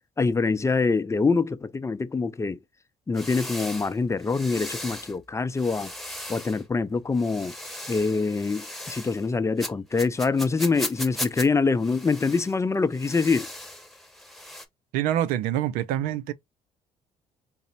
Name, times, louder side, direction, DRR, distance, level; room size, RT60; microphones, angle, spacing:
voice 1, 0.2-2.6 3.1-5.9 6.3-7.5 7.9-13.5, left 4 dB, 20° left, 0.5 m, -25 dB
sound 1, 3.1-5.2 5.5-6.6 7.1-9.3 9.6-11.5 11.8-12.5 12.9-14.7, left 1 dB, ahead, 1.0 m, -37 dB
voice 2, 14.9-16.3, right 12 dB, 80° right, 0.5 m, -26 dB
4.0 x 2.0 x 4.0 m
supercardioid pair, 65°, 14 cm